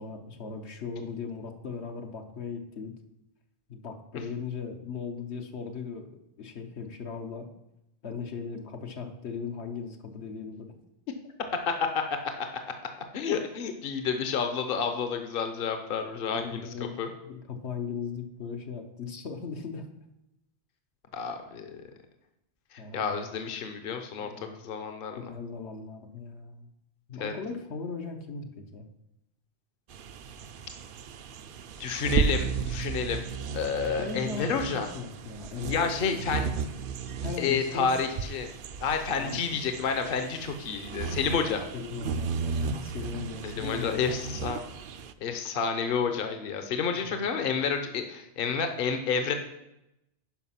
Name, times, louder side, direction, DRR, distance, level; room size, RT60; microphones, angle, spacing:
voice 1, 0.0-2.9 3.7-6.1 6.4-7.5 8.0-10.7 11.1-11.2 16.3-16.9 17.2-19.9 22.8-23.2 24.2-24.6 25.2-26.7 27.1-28.9 34.0-36.5 37.2-37.9 39.1-39.6 41.7-44.2 46.9-47.3, left 5 dB, 80° left, 4 dB, 1.3 m, -38 dB
voice 2, 13.1-17.1 21.1-21.8 22.7-24.3 24.6-25.3 27.2-27.3 31.8-33.2 33.5-34.9 35.7-36.5 37.4-38.5 38.8-41.7 43.4-44.6 45.2-49.3, left 6 dB, 60° left, 6 dB, 1.0 m, -30 dB
sound 1, 29.9-45.1, right 6 dB, 60° right, 0.7 m, -34 dB
10.5 x 5.1 x 5.7 m, 0.87 s
omnidirectional pair, 1.1 m